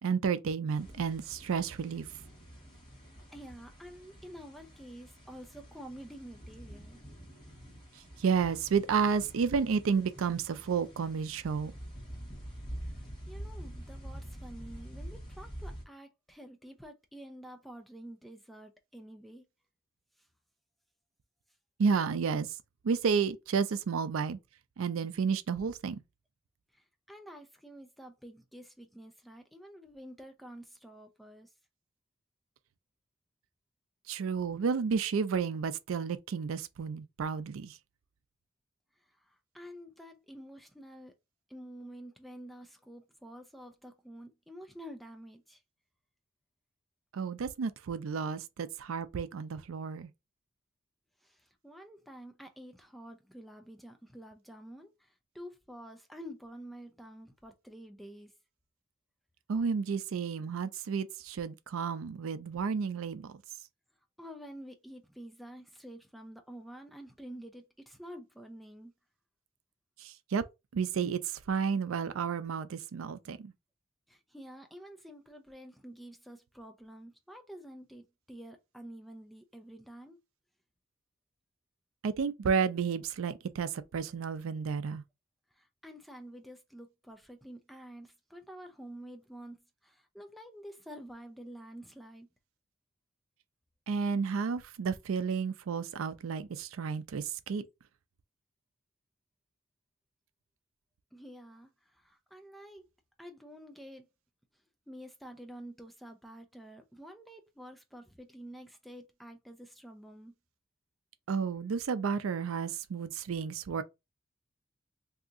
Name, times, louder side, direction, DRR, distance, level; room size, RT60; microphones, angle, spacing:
voice 1, 0.0-2.1 8.2-11.7 21.8-22.5 22.8-24.4 24.8-26.0 34.1-37.8 47.1-50.1 59.5-63.4 70.0-70.4 70.7-73.5 82.0-85.0 93.9-97.6 111.3-113.8, right 6 dB, 85° right, 0.4 m, -31 dB
sound 1, 0.7-15.8, equal, 20° left, 1.3 m, -47 dB
voice 2, 3.3-7.0 13.3-19.4 26.7-31.5 39.2-41.1 41.5-45.6 51.2-58.3 64.2-68.9 74.1-80.2 85.5-92.3 101.1-102.9 103.2-104.1 104.9-110.3, equal, ahead, 0.4 m, -49 dB
2.7 x 2.5 x 3.6 m
head